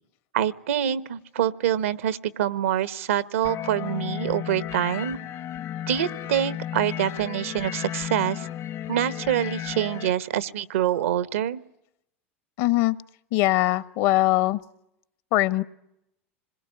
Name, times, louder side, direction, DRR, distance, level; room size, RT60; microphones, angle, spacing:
voice 1, 0.3-5.2 5.9-8.5 8.9-11.6, right 10 dB, 75° right, 16 dB, 1.2 m, -25 dB
sound 1, 3.4-10.1, left 11 dB, 45° left, 0.9 m, -34 dB
voice 2, 12.6-13.0 13.3-14.6 15.3-15.6, left 17 dB, 60° left, 16 dB, 1.2 m, -21 dB
27.0 x 21.0 x 9.9 m, 0.84 s
hypercardioid pair, 90°, 7 cm